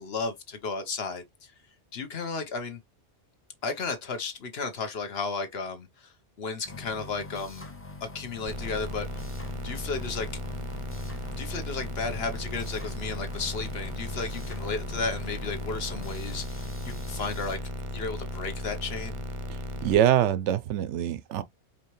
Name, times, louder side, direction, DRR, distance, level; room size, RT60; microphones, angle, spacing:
voice 1, 0.0-1.5 1.9-2.8 3.6-7.7 8.0-9.2 9.6-10.3 11.3-17.6 17.9-19.2, left 4 dB, 60° left, 1.2 m, -34 dB
sound 1, 6.6-17.6, left 2 dB, 15° left, 0.5 m, -44 dB
sound 2, 8.5-19.9, equal, 40° right, 0.5 m, -36 dB
voice 2, 19.5-21.4, right 11 dB, 90° right, 0.9 m, -24 dB
4.8 x 2.8 x 3.1 m
omnidirectional pair, 1.2 m